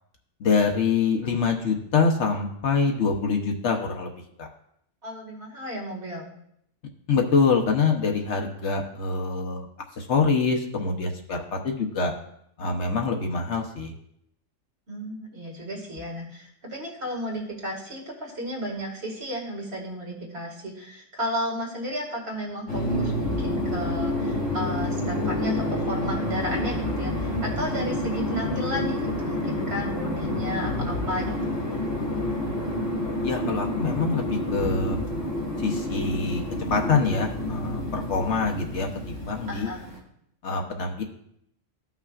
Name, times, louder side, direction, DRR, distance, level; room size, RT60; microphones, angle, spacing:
voice 1, 0.4-4.5 7.1-9.7 10.0-12.1 12.6-13.9 33.2-35.0 35.6-36.4 36.7-38.9 39.2-39.7 40.4-41.0, left 4 dB, 65° left, 2 dB, 1.2 m, -25 dB
voice 2, 5.0-6.3 14.9-31.5 39.5-39.8, equal, 55° right, -1 dB, 2.2 m, -33 dB
sound 1, 22.7-40.0, left 1 dB, 85° left, 2.6 m, -28 dB
14.5 x 5.7 x 2.4 m, 0.72 s
omnidirectional pair, 1.3 m